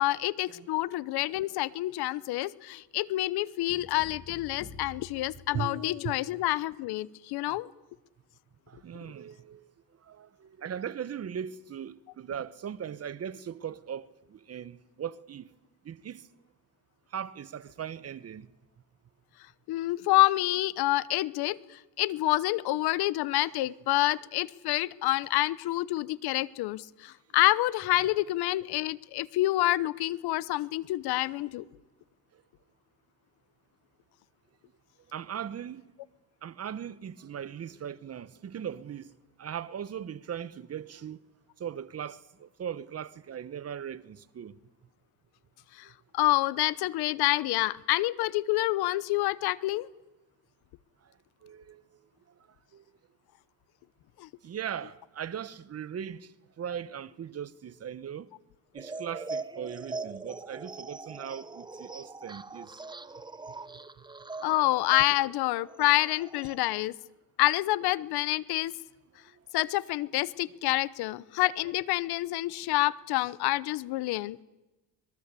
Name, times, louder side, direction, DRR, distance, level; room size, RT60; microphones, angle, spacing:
voice 1, 0.0-7.7 19.7-31.6 45.8-45.9 46.1-49.9 54.2-54.3 64.4-66.9 67.4-68.7 69.5-74.4, left 17 dB, 80° left, 0.9 m, -28 dB
sound 1, 3.7-6.2, left 4 dB, 45° left, 3.2 m, -49 dB
voice 2, 8.7-9.7 10.0-15.5 15.8-16.3 17.1-18.5 28.0-28.1 32.3-32.4 35.1-35.9 36.4-39.1 39.4-41.2 41.6-44.6 45.8-45.9 51.0-51.1 51.4-52.0 52.7-52.8 54.4-58.3 58.7-62.8 63.7-63.9 69.3-69.4 70.5-70.6, right 8 dB, 40° right, 1.1 m, -39 dB
sound 2, 58.7-66.8, right 3 dB, 10° right, 1.0 m, -42 dB
25.0 x 21.5 x 8.4 m
cardioid pair, 105°, 38 cm